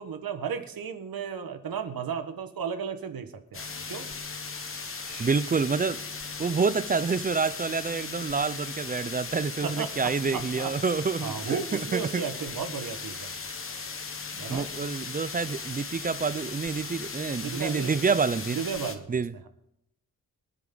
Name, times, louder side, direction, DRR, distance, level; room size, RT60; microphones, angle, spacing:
voice 1, 0.0-4.1 9.6-10.7 11.2-13.3 14.4-14.7 17.4-18.0 18.5-19.5, right 6 dB, 85° right, 1.4 m, -34 dB
sound 1, 3.5-18.9, left 4 dB, 40° left, 1.1 m, -37 dB
sound 2, 5.1-8.1, right 4 dB, 45° right, 3.4 m, -54 dB
voice 2, 5.2-6.0 6.4-12.2 14.3-18.6 19.1-19.3, right 5 dB, 25° right, 0.4 m, -28 dB
25.0 x 9.4 x 3.9 m
wide cardioid pair, 165°, 34 cm